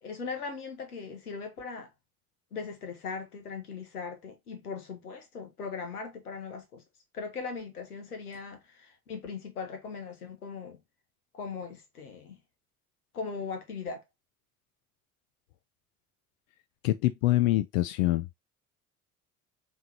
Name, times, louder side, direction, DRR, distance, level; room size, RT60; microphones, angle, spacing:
voice 1, 0.0-1.9 2.5-6.8 7.1-10.8 11.3-12.4 13.1-14.0, left 5 dB, 80° left, 1.3 m, -39 dB
voice 2, 16.8-18.3, left 16 dB, 65° left, 0.5 m, -25 dB
5.5 x 3.2 x 2.8 m
figure-of-eight pair, 60°, 44 cm